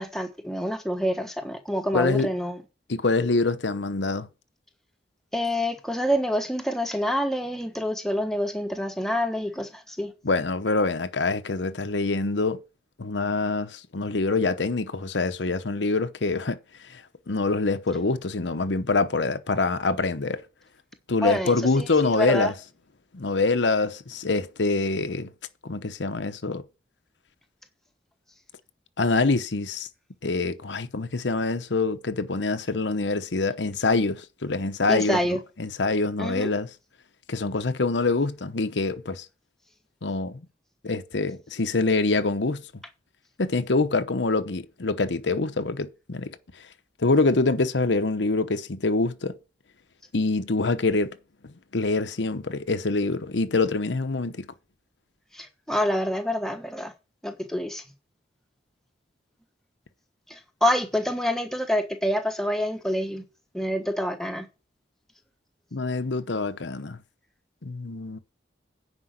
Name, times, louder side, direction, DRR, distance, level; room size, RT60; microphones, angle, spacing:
voice 1, 0.0-2.6 5.3-10.1 21.2-22.5 34.9-35.4 36.2-36.5 55.3-56.9 57.2-57.8 60.6-63.2 63.5-64.5, equal, ahead, 1.2 m, -27 dB
voice 2, 1.9-2.3 2.9-4.3 10.2-12.6 13.0-16.6 16.9-17.0 17.3-20.4 21.1-22.5 23.1-25.3 25.6-26.6 29.0-29.9 30.2-35.2 35.6-36.7 37.3-39.2 40.0-40.4 40.8-42.7 43.4-46.3 47.0-49.4 50.1-51.1 51.7-54.5 65.7-67.0 67.6-68.2, left 3 dB, 85° left, 0.9 m, -25 dB
9.7 x 5.3 x 8.1 m
head